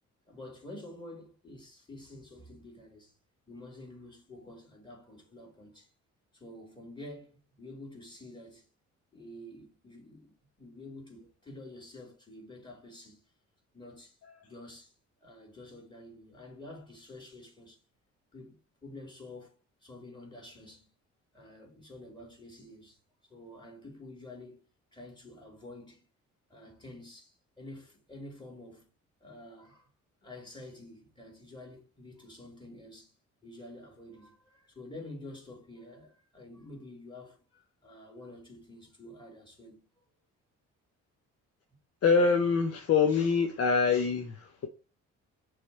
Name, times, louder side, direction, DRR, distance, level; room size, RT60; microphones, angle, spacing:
voice 1, 0.3-3.2 3.5-5.9 6.3-8.7 9.1-13.2 13.7-17.8 18.3-19.5 19.8-20.9 21.3-24.6 24.9-26.1 26.5-28.9 29.2-29.9 30.2-33.2 33.4-39.8, left 1 dB, 15° left, 3.0 m, -49 dB
voice 2, 42.0-44.7, left 5 dB, 55° left, 0.8 m, -25 dB
6.6 x 3.6 x 4.1 m
cardioid pair, 90°, 30 cm